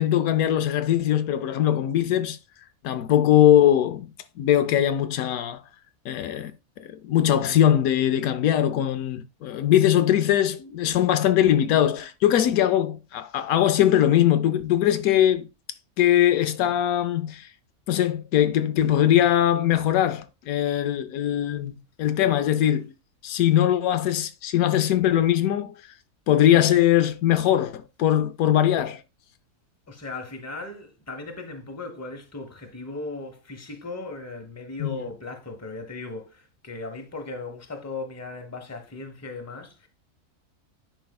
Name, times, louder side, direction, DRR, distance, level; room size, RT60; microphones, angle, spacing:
voice 1, 0.0-2.4 2.8-4.1 4.4-5.6 6.1-6.5 6.8-15.5 16.0-17.5 17.9-22.9 23.2-25.7 26.3-29.0 34.8-35.0, left 11 dB, 80° left, 1.0 m, -21 dB
voice 2, 29.9-39.9, left 3 dB, 10° left, 0.9 m, -37 dB
10.0 x 4.6 x 2.3 m
omnidirectional pair, 1.5 m